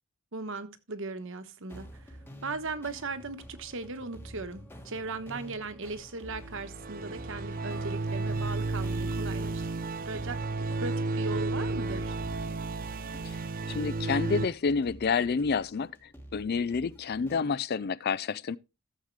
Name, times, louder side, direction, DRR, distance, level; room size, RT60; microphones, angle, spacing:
voice 1, 0.3-2.2 2.4-9.6 10.0-10.4 10.8-12.2, right 3 dB, 60° right, 1.2 m, -38 dB
sound 1, 1.7-17.6, equal, 10° left, 1.4 m, -49 dB
sound 2, 6.3-14.5, right 3 dB, 40° right, 0.5 m, -33 dB
voice 2, 13.7-15.9 16.3-18.6, left 5 dB, 45° left, 0.4 m, -29 dB
15.0 x 7.4 x 3.2 m
head